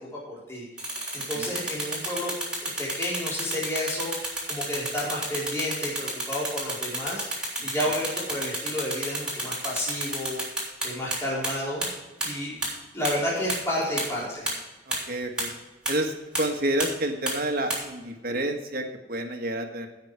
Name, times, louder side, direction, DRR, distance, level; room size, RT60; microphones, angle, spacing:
voice 1, 0.0-2.3 2.6-10.4 10.8-11.9 12.2-12.6 12.9-14.5, left 1 dB, 15° left, -7 dB, 3.9 m, -31 dB
sound 1, 0.8-11.2 11.4-11.5 11.8-11.9 12.2-12.3 12.6-12.7 13.0-13.1 13.5-13.6 14.0-14.1 14.5-14.6 14.9-15.0 15.4-15.5 15.9-16.0 16.3-16.4 16.8-16.9 17.3-17.4 17.7-17.8, right 1 dB, 5° right, 3.4 m, -29 dB
voice 2, 14.9-15.5 15.9-19.9, right 1 dB, 50° right, 4 dB, 1.5 m, -29 dB
15.5 x 5.9 x 4.7 m, 1.1 s
head